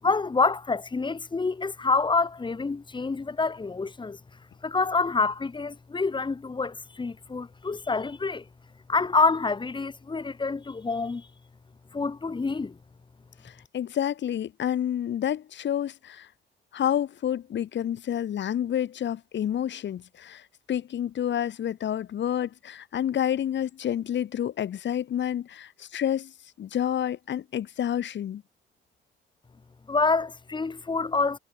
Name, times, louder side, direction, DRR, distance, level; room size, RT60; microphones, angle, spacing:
voice 1, 0.0-4.2 4.6-8.4 8.9-11.3 11.9-12.8 29.9-31.4, left 4 dB, 25° left, 1.3 m, -27 dB
voice 2, 13.4-16.3 16.7-26.3 26.6-28.4, left 10 dB, 65° left, 4.5 m, -29 dB
cardioid pair, 90°, 20 cm